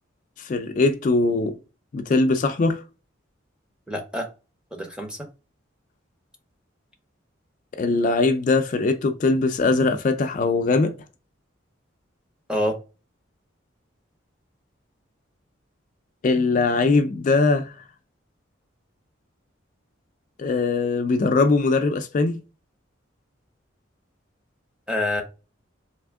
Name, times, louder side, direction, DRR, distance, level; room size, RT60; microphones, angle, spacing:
voice 1, 0.4-1.6 1.9-2.8 7.8-10.9 16.2-17.7 20.4-22.4, left 3 dB, 40° left, 0.3 m, -21 dB
voice 2, 3.9-4.3 4.7-5.2 12.5-12.8 24.9-25.2, left 1 dB, 5° right, 0.6 m, -26 dB
3.4 x 2.8 x 3.4 m
head